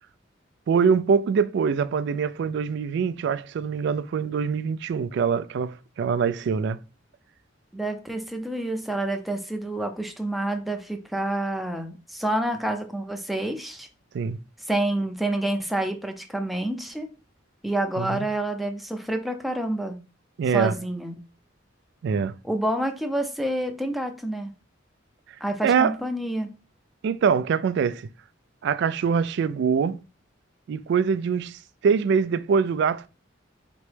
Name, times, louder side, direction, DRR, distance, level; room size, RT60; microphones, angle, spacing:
voice 1, 0.7-6.8 14.1-14.4 18.0-18.2 20.4-20.7 22.0-22.3 25.6-25.9 27.0-28.1 28.6-30.0 30.7-33.1, right 6 dB, 60° right, 0.3 m, -24 dB
voice 2, 7.7-13.9 14.7-17.1 17.6-20.0 20.5-21.2 22.4-24.5 25.4-26.5, right 1 dB, ahead, 0.5 m, -28 dB
4.3 x 3.0 x 3.3 m
head